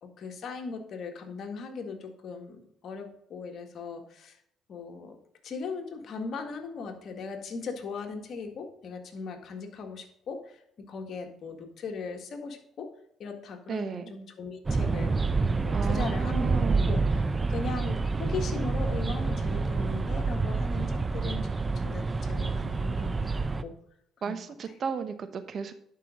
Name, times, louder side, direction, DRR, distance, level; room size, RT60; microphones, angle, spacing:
voice 1, 0.0-4.4 4.7-5.2 5.4-12.9 13.2-23.3 23.6-23.7 24.3-24.4, left 4 dB, 60° left, 5 dB, 1.8 m, -39 dB
voice 2, 13.7-14.1 15.7-16.9 24.2-25.7, right 6 dB, 55° right, 10 dB, 1.1 m, -34 dB
sound 1, 14.7-23.6, right 3 dB, 30° right, 0.7 m, -28 dB
11.5 x 5.4 x 3.8 m, 0.71 s
supercardioid pair, 70°, 0 cm